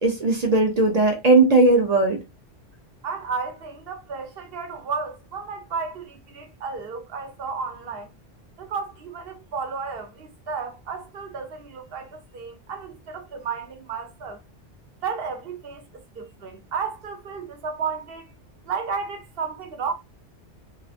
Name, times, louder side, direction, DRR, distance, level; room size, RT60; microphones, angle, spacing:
voice 1, 0.0-2.2, right 2 dB, 50° right, 0.5 m, -18 dB
voice 2, 3.0-8.1 8.6-14.4 15.0-18.3 18.6-19.9, right 5 dB, 65° right, 0.9 m, -33 dB
2.4 x 2.4 x 2.3 m
omnidirectional pair, 1.1 m